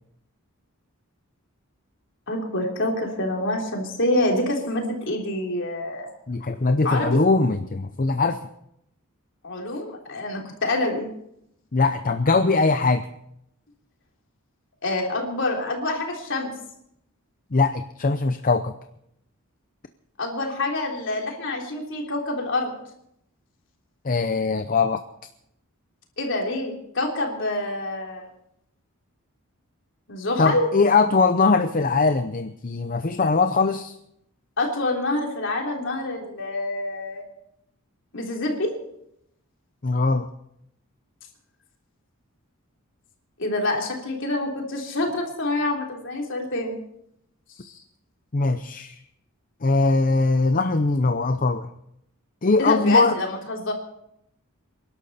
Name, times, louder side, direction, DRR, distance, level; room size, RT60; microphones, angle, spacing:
voice 1, 2.3-6.1 6.8-7.2 9.4-11.1 14.8-16.5 20.2-22.7 26.2-28.2 30.1-30.7 34.6-37.2 38.1-38.8 43.4-46.8 47.6-47.7 52.6-53.7, left 2 dB, 55° left, 0 dB, 3.6 m, -26 dB
voice 2, 6.3-8.5 11.7-13.1 17.5-18.7 24.0-25.0 30.4-34.0 39.8-40.3 48.3-49.0 49.6-51.7 52.4-53.2, left 3 dB, 40° left, 9 dB, 0.6 m, -21 dB
27.5 x 12.0 x 4.2 m, 0.77 s
head